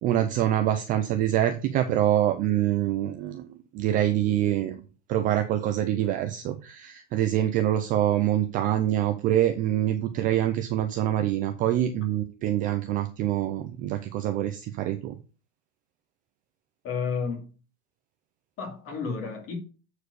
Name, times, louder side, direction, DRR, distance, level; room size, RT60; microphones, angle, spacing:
voice 1, 0.0-3.5 3.7-4.7 5.1-15.2, right 12 dB, 25° right, 0.4 m, -25 dB
voice 2, 16.8-17.5 18.6-19.5, left 5 dB, 35° left, 2.6 m, -31 dB
8.4 x 4.7 x 4.7 m
supercardioid pair, 155°, 38 cm